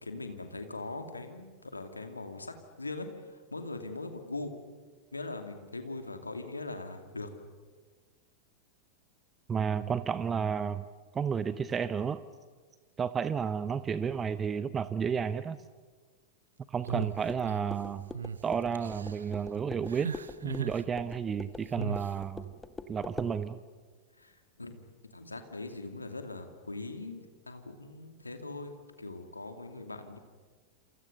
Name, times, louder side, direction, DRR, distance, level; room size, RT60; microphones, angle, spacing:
voice 1, 0.0-4.5 5.1-7.5 24.1-24.8 25.1-30.2, left 2 dB, 80° left, 6 dB, 2.5 m, -41 dB
voice 2, 9.5-10.8 11.1-12.2 13.0-15.6 16.7-18.1 18.4-20.1 20.4-22.5 22.9-23.6, right 7 dB, 20° right, 15 dB, 0.8 m, -32 dB
sound 1, 16.8-17.8 18.1-18.4 18.8-19.2 19.9-20.8 21.8-22.1, right 6 dB, 70° right, 0.8 m, -37 dB
sound 2, 16.9-23.4, left 3 dB, 10° left, 1.4 m, -45 dB
28.0 x 28.0 x 6.7 m, 1.5 s
figure-of-eight pair, 90°, 0 cm